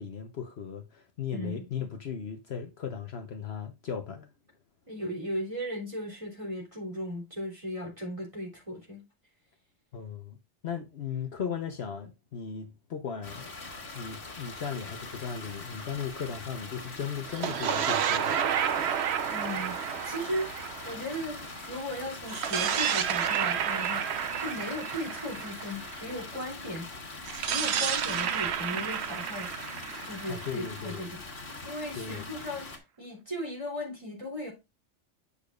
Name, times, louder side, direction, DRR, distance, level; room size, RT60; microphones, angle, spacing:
voice 1, 0.0-4.3 9.9-10.4 10.6-13.5 13.9-18.4 30.3-31.1 31.9-32.3, left 7 dB, 60° left, 1.1 m, -37 dB
voice 2, 1.3-1.6 4.9-9.0 19.3-26.9 27.4-29.5 30.0-31.2 31.6-34.5, equal, 25° right, 3.4 m, -37 dB
sound 1, 13.2-32.8, left 3 dB, 90° left, 2.3 m, -42 dB
sound 2, 17.3-21.7 22.2-26.2 27.2-31.0, right 8 dB, 65° right, 0.9 m, -31 dB
8.6 x 6.7 x 2.4 m
omnidirectional pair, 1.3 m